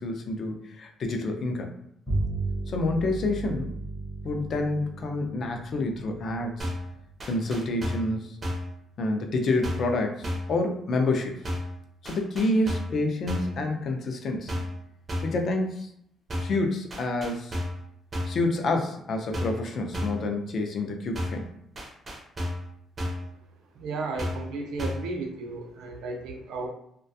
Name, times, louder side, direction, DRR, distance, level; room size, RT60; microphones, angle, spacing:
voice 1, 0.0-1.7 2.7-3.7 4.2-6.7 7.2-8.4 9.0-11.4 12.0-14.6 15.2-15.9 16.4-17.6 18.3-21.5, left 2 dB, 40° left, 4 dB, 0.3 m, -28 dB
Bowed string instrument, 2.1-7.7, right 2 dB, 15° left, 0.7 m, -35 dB
sound 1, 6.6-6.9 7.2-8.1 8.4-8.7 9.6-9.9 10.2-10.6 11.4-11.8 12.0-13.0 13.3-13.6 14.5-14.8 15.1-15.4 16.3-16.6 16.9-17.8 18.1-18.4 19.3-19.7 19.9-20.3 21.1-21.5 21.8-22.7 23.0-23.3 24.2-24.5 24.8-25.1, left 1 dB, 20° right, 0.5 m, -32 dB
voice 2, 23.8-26.7, right 3 dB, 85° right, 2 dB, 0.5 m, -34 dB
2.3 x 2.2 x 2.6 m, 0.72 s
cardioid pair, 175°, 0 cm